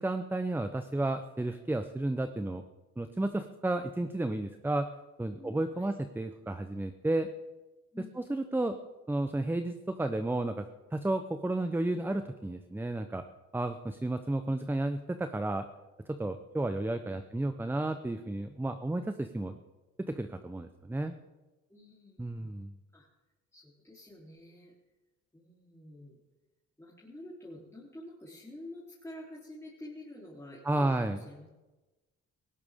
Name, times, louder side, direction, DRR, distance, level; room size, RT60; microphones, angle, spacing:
voice 1, 0.0-2.6 3.0-4.9 5.2-7.3 8.3-8.8 9.1-10.6 10.9-13.2 13.5-15.7 16.1-19.6 20.1-21.1 22.2-22.7 30.6-31.2, right 2 dB, 5° right, 8 dB, 0.7 m, -32 dB
voice 2, 5.3-5.9 7.9-8.2 17.1-17.3 21.7-22.5 22.9-23.1 23.5-24.7 25.3-26.2 26.8-31.5, left 1 dB, 10° left, -7 dB, 3.4 m, -49 dB
18.0 x 16.5 x 3.6 m, 1.1 s
cardioid pair, 90°, 30 cm